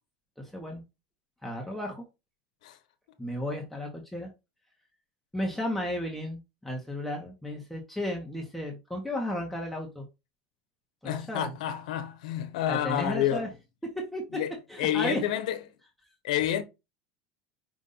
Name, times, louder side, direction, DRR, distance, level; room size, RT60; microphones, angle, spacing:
voice 1, 0.4-0.8 1.4-2.0 3.2-4.3 5.3-10.0 11.0-11.5 12.7-13.5 13.9-14.4 14.7-15.2, left 1 dB, ahead, 1.0 m, -34 dB
voice 2, 11.0-13.5 14.3-14.5 14.8-15.6 16.2-16.6, left 11 dB, 85° left, 0.9 m, -29 dB
5.2 x 2.6 x 3.9 m
supercardioid pair, 140°, 4 cm